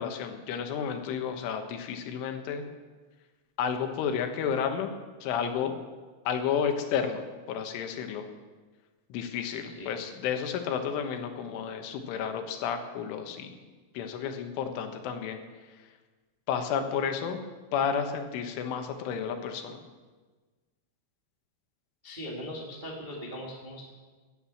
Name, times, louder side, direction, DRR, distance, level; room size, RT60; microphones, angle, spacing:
voice 1, 0.0-2.6 3.6-4.9 5.2-5.8 6.3-8.3 9.1-13.6 14.0-15.4 16.5-17.4 17.7-19.8, left 7 dB, 80° left, 6 dB, 3.7 m, -31 dB
voice 2, 22.0-23.9, equal, 55° right, -2 dB, 0.5 m, -40 dB
17.5 x 10.5 x 7.2 m, 1.3 s
omnidirectional pair, 5.7 m